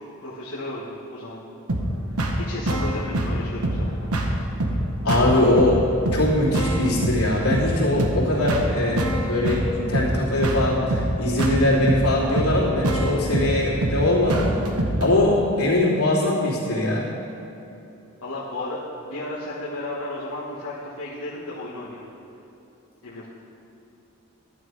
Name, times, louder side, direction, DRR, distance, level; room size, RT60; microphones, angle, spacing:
voice 1, 0.2-1.5 2.1-4.1 18.2-22.1 23.0-23.3, left 1 dB, 70° left, -9 dB, 1.6 m, -34 dB
sound 1, 1.7-15.1, right 1 dB, 90° right, 1.2 m, -25 dB
voice 2, 5.0-5.8 6.1-14.7 15.0-17.1, left 1 dB, 90° left, -6 dB, 3.0 m, -21 dB
11.5 x 9.3 x 4.8 m, 2.9 s
head